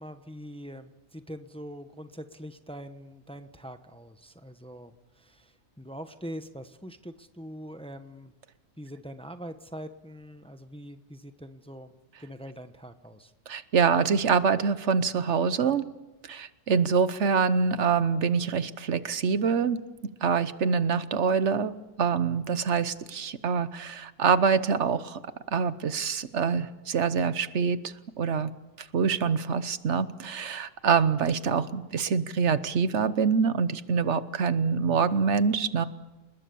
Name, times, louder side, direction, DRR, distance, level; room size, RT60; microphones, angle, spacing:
voice 1, 0.0-8.3 8.8-11.9 12.2-13.3, equal, 5° left, 9 dB, 1.0 m, -43 dB
voice 2, 13.5-15.8 16.2-19.8 20.2-21.7 22.0-25.2 25.5-28.5 28.8-35.9, right 6 dB, 75° right, 14 dB, 1.3 m, -25 dB
29.5 x 20.0 x 7.0 m, 1.1 s
omnidirectional pair, 1.2 m